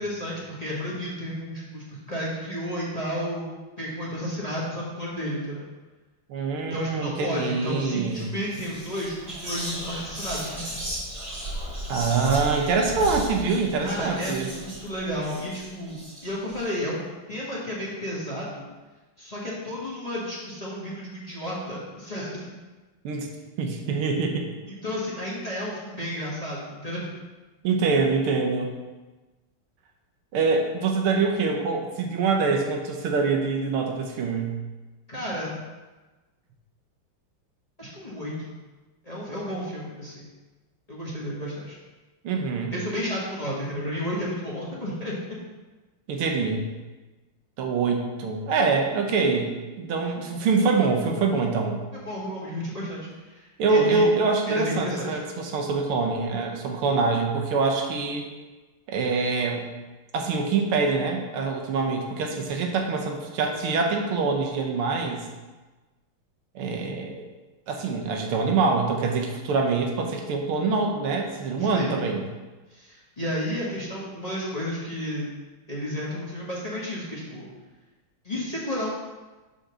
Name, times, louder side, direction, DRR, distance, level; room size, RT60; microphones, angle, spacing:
voice 1, 0.0-3.5 3.8-5.6 6.7-10.5 13.8-17.0 17.3-18.7 19.2-22.5 24.7-27.1 35.1-35.6 37.8-38.6 39.0-40.2 40.9-41.8 42.7-45.4 51.9-54.0 54.5-55.2 71.6-72.1 72.7-75.3 75.7-77.5 78.2-78.9, equal, 20° left, -6 dB, 1.2 m, -32 dB
voice 2, 6.3-8.3 11.9-14.5 23.0-23.3 23.6-24.5 27.6-28.7 30.3-34.6 42.2-42.8 46.1-46.7 47.6-51.8 53.6-58.3 58.9-59.7 60.1-65.3 66.6-67.2 67.7-72.2, right 4 dB, 90° right, 2 dB, 1.8 m, -25 dB
Whispering, 8.0-8.2 8.5-16.6, equal, 30° right, 2.9 m, -36 dB
6.3 x 4.1 x 6.3 m, 1.2 s
omnidirectional pair, 2.3 m